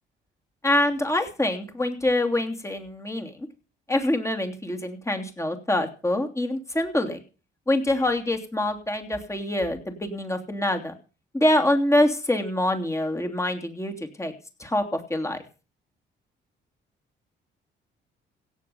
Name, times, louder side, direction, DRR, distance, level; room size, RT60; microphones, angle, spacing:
voice 1, 0.6-3.3 3.9-7.2 7.7-10.9 11.3-14.3 14.6-15.4, left 1 dB, 15° left, 5 dB, 3.0 m, -25 dB
16.5 x 7.3 x 7.1 m, 0.35 s
cardioid pair, 90°, 20 cm